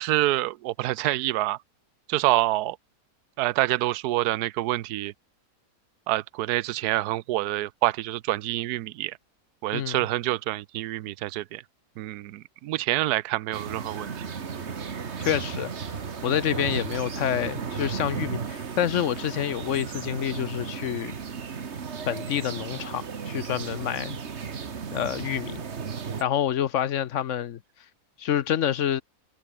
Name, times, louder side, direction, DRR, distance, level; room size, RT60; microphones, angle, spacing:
voice 1, 0.0-1.6 2.1-2.8 3.4-5.1 6.1-9.2 9.6-11.6 12.0-14.2, right 16 dB, 75° right, 1.2 m, -27 dB
voice 2, 9.7-10.0 15.2-21.2 22.1-24.2 24.9-25.6 26.2-27.6 28.2-29.0, left 10 dB, 60° left, 0.9 m, -28 dB
sound 1, 13.5-26.2, right 6 dB, 45° right, 1.6 m, -35 dB
open air
omnidirectional pair, 1.7 m